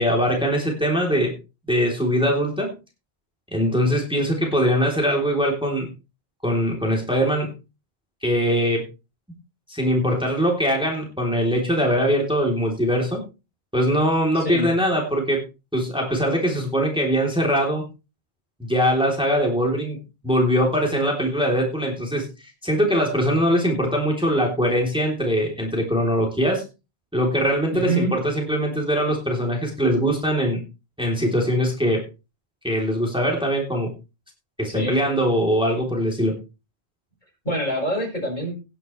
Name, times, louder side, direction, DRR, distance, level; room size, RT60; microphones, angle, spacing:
voice 1, 0.0-1.3 1.7-2.7 3.5-5.9 6.4-7.5 8.2-8.9 9.7-13.2 13.7-15.4 15.7-17.9 18.6-20.0 20.2-26.6 27.1-30.6 31.0-32.0 32.6-33.9 34.6-36.4, equal, 5° right, 0 dB, 3.4 m, -22 dB
voice 2, 14.3-14.7 27.7-28.1 34.7-35.0 37.4-38.6, right 1 dB, 45° left, 1 dB, 5.9 m, -25 dB
18.5 x 9.4 x 3.3 m, 0.29 s
omnidirectional pair, 1.1 m